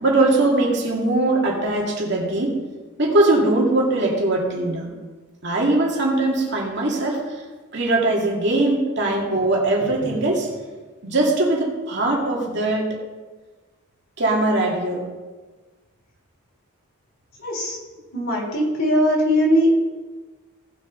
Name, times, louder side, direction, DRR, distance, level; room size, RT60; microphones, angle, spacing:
voice 1, 0.0-2.6 3.0-4.9 5.4-7.4 7.7-10.5 11.0-13.0 14.2-15.1, right 2 dB, 55° right, -2 dB, 2.5 m, -21 dB
voice 2, 17.4-17.8 18.1-19.7, equal, 60° left, -3 dB, 3.9 m, -20 dB
18.0 x 6.8 x 4.0 m, 1.3 s
head